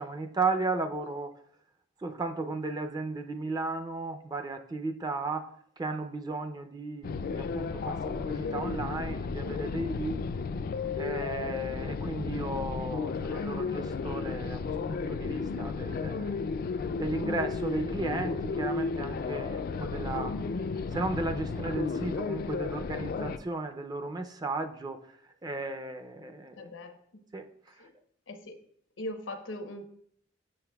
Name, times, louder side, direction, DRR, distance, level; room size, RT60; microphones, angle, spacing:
voice 1, 0.0-1.4 2.0-10.3 11.0-16.5 17.0-26.7 27.3-27.9, right 3 dB, 20° right, 0.4 m, -35 dB
sound 1, 7.0-23.4, left 4 dB, 50° left, 0.3 m, -33 dB
voice 2, 26.6-26.9 27.8-27.9 28.3-28.6 29.0-29.9, left 1 dB, 85° left, 0.8 m, -39 dB
7.6 x 6.4 x 2.3 m
head